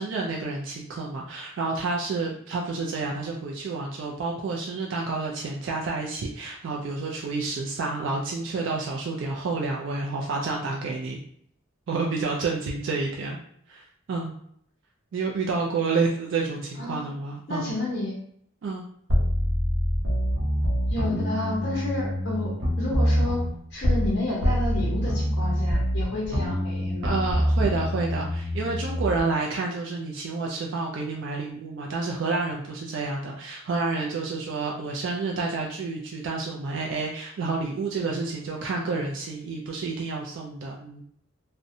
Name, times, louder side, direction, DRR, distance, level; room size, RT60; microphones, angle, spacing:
voice 1, 0.0-11.2 11.9-13.4 13.7-14.3 15.1-17.7 18.6-18.8 27.0-41.0, right 3 dB, 65° right, -1 dB, 0.3 m, -29 dB
voice 2, 16.8-17.1 17.5-18.1 20.9-22.5 22.8-23.4 23.7-27.1, left 2 dB, 55° left, -5 dB, 0.7 m, -30 dB
sound 1, 19.1-24.2 24.4-29.2, equal, 85° right, 0.9 m, -25 dB
2.6 x 2.1 x 2.6 m, 0.67 s
head